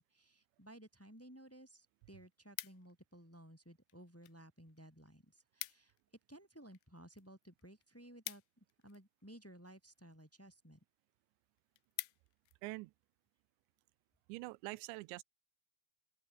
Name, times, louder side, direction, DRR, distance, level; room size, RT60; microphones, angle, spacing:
voice 1, 0.0-5.9 6.3-10.8, right 1 dB, 5° left, 2.8 m, -57 dB
sound 1, 1.3-1.4 1.8-3.2 3.9-4.4 4.7-4.8 5.1-5.2 5.4-6.0 6.4-9.2 9.9-10.3 10.8-10.9 11.2-11.3 11.6-12.6 13.1-13.3, left 20 dB, 80° left, 2.5 m, -48 dB
voice 2, 12.6-12.9 14.3-15.2, right 23 dB, 85° right, 2.9 m, -45 dB
open air
omnidirectional pair, 5.1 m